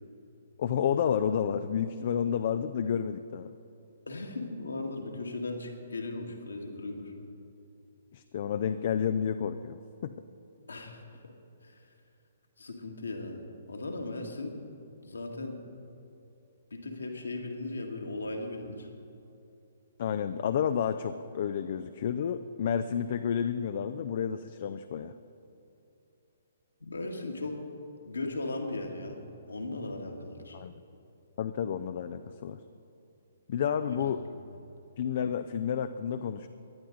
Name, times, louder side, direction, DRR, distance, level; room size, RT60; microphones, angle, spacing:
voice 1, 0.6-3.5 8.1-10.1 20.0-25.1 30.5-30.7 31.4-32.6 33.5-34.2 35.0-36.5, left 8 dB, 45° left, 10 dB, 0.4 m, -30 dB
voice 2, 4.1-7.1 10.7-11.2 11.6-11.8 12.6-14.6 15.0-15.6 16.7-18.9 26.8-27.6 28.1-29.2 29.5-30.6 33.8-34.0, left 2 dB, 70° left, 3 dB, 1.8 m, -37 dB
18.5 x 11.5 x 3.9 m, 2.8 s
figure-of-eight pair, 125°, 0 cm